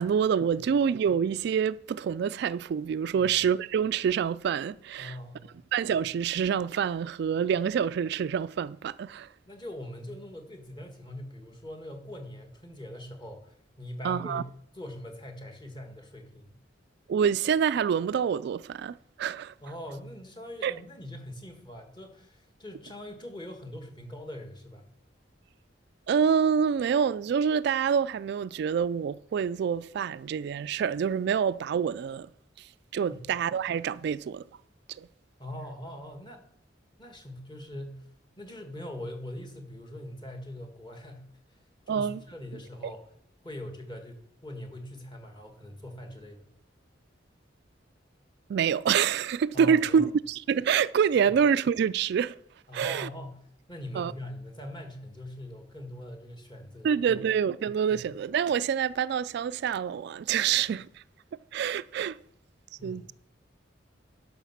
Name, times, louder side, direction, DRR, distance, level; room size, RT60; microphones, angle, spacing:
voice 1, 0.0-5.2 5.7-9.3 14.0-14.4 17.1-19.5 20.6-20.8 26.1-32.3 32.6-34.4 34.9-35.1 41.9-42.2 42.8-42.9 48.5-52.3 52.7-53.1 54.0-54.1 56.8-61.0 61.5-62.2 62.8-63.1, right 7 dB, 65° right, 0.3 m, -27 dB
voice 2, 5.0-5.6 9.5-14.5 14.7-16.5 19.6-24.9 33.1-33.2 35.4-36.4 37.0-38.1 38.4-41.6 41.9-43.1 43.4-46.5 49.5-50.1 52.7-53.4 53.7-57.2 57.9-58.0 62.8-63.1, left 1 dB, 25° left, 1.7 m, -42 dB
12.0 x 5.9 x 5.8 m
head